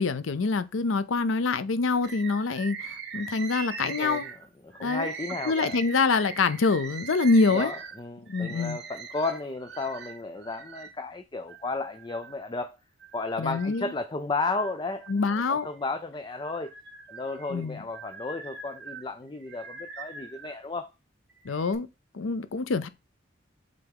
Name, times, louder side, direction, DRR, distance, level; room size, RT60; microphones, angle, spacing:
voice 1, 0.0-4.2 4.8-5.1 5.5-7.7 8.3-8.8 13.4-13.9 15.1-15.7 17.5-17.8 21.4-21.9 22.1-22.9, left 4 dB, 80° left, 0.6 m, -25 dB
Bird, 2.0-10.9 11.5-12.5 13.0-14.0 14.4-15.8 16.3-20.6 21.3-21.8, right 5 dB, 55° right, 1.2 m, -42 dB
voice 2, 3.8-4.3 4.6-5.8 7.5-12.8 13.1-16.7 17.1-20.9, left 3 dB, 20° left, 0.4 m, -33 dB
7.6 x 3.4 x 3.6 m
head